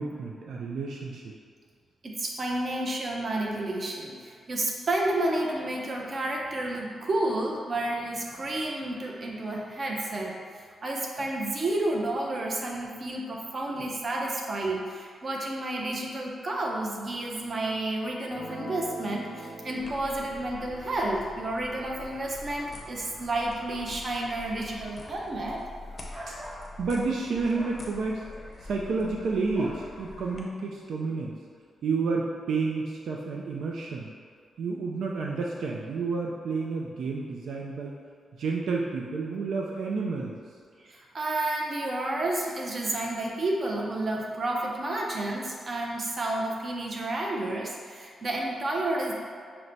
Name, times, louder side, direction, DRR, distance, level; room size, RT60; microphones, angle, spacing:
voice 1, 0.0-1.4 26.3-26.4 26.8-28.2 28.6-31.4 31.8-34.1 34.6-37.9 38.4-40.4, right 4 dB, 75° right, -2 dB, 0.4 m, -30 dB
voice 2, 2.0-25.6 40.8-49.1, right 1 dB, 40° right, -1 dB, 0.7 m, -31 dB
Guitar, 18.3-24.9, right 1 dB, 55° right, 1.3 m, -46 dB
sound 1, 19.8-30.4, left 2 dB, 35° left, 0.6 m, -46 dB
sound 2, 26.1-26.6 27.5-27.8 29.5-29.8, equal, 10° right, 0.8 m, -41 dB
5.9 x 2.1 x 3.9 m, 2.1 s
cardioid pair, 120°, 0 cm